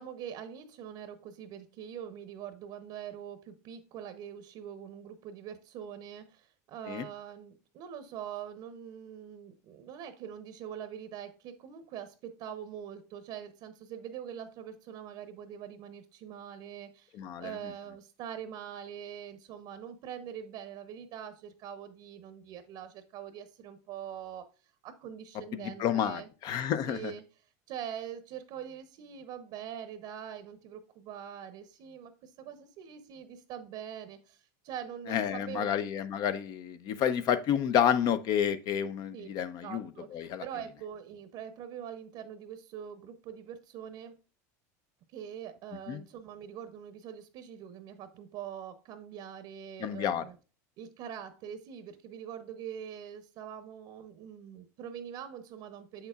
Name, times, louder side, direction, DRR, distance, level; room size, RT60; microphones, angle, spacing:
voice 1, 0.0-17.1 17.4-24.5 24.8-26.3 26.9-27.2 27.7-35.7 39.1-39.3 39.6-44.1 45.1-50.4 50.8-56.1, right 9 dB, 55° right, 0.8 m, -43 dB
voice 2, 17.2-17.5 25.5-27.1 35.1-39.8 40.1-40.4 45.9-46.0 49.8-50.2, left 9 dB, 50° left, 0.6 m, -30 dB
7.2 x 6.6 x 2.4 m
supercardioid pair, 120°, 9 cm